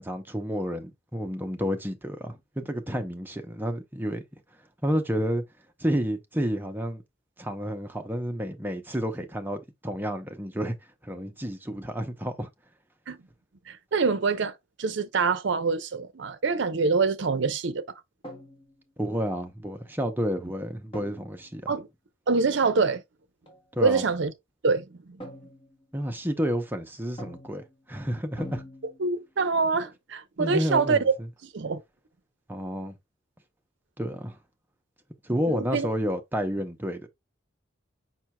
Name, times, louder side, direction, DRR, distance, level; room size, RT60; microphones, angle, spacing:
voice 1, 0.0-4.2 4.8-5.4 5.8-7.0 7.4-10.8 11.0-12.5 19.0-21.7 23.7-24.0 25.9-28.6 30.4-31.1 32.5-33.0 34.0-34.4 35.2-37.1, equal, 10° right, 0.6 m, -30 dB
voice 2, 13.7-17.8 21.7-21.9 22.3-23.0 23.8-24.3 24.6-25.2 29.0-31.1 31.5-31.8 35.5-35.9, right 4 dB, 65° right, 0.6 m, -25 dB
sound 1, 18.2-18.9 20.9-21.5 23.5-23.6 25.2-25.9 27.2-27.8 28.4-29.3, equal, 30° left, 1.2 m, -44 dB
5.4 x 4.4 x 2.2 m
head